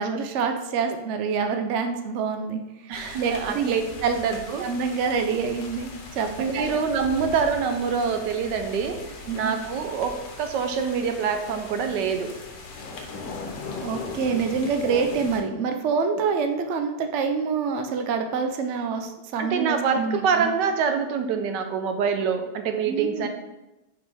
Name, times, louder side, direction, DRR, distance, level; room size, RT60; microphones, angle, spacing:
voice 1, 0.0-3.7 4.0-4.2 4.6-6.6 9.3-9.5 13.8-20.5 22.9-23.3, right 5 dB, 65° right, 6 dB, 0.7 m, -26 dB
sound 1, 2.9-15.4, left 3 dB, 80° left, 1.6 m, -40 dB
voice 2, 2.9-3.8 4.2-4.7 6.4-9.0 9.3-12.3 14.8-15.1 19.4-23.3, right 6 dB, 80° right, 6 dB, 1.3 m, -25 dB
6.3 x 5.1 x 3.5 m, 0.97 s
omnidirectional pair, 1.9 m